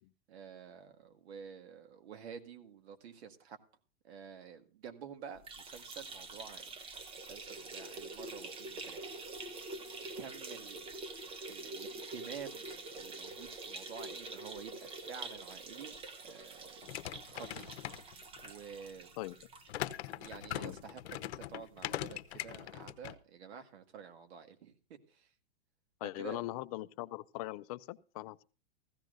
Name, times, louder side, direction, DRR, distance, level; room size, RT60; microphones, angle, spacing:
voice 1, 0.3-3.6 4.0-6.7 7.2-9.5 10.2-10.9 11.5-16.0 16.2-16.8 17.2-17.8 18.4-19.1 20.0-25.3 26.2-26.4, right 7 dB, 70° right, 2.0 m, -50 dB
sound 1, 5.4-20.8 21.1-21.2 21.5-21.6 22.6-22.7, right 3 dB, 15° right, 0.8 m, -46 dB
sound 2, 16.8-18.5 19.7-23.2, left 13 dB, 70° left, 0.9 m, -41 dB
voice 2, 26.0-28.4, left 17 dB, 35° left, 0.5 m, -40 dB
16.0 x 14.5 x 2.6 m
hypercardioid pair, 145°, 33 cm